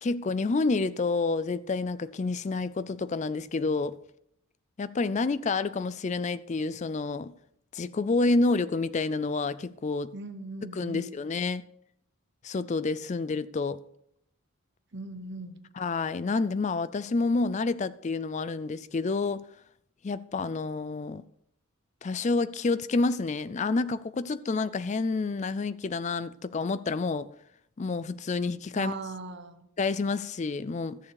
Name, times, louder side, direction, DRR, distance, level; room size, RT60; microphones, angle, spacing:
voice 1, 0.0-4.0 4.8-7.3 7.7-10.1 10.6-11.6 12.4-13.8 15.8-19.4 20.0-21.2 22.0-27.3 27.8-28.9 29.8-31.0, left 3 dB, 30° left, 0.4 m, -29 dB
voice 2, 10.1-11.1 14.9-15.6 28.8-29.7, right 2 dB, 50° right, 0.9 m, -39 dB
14.0 x 7.2 x 4.8 m
head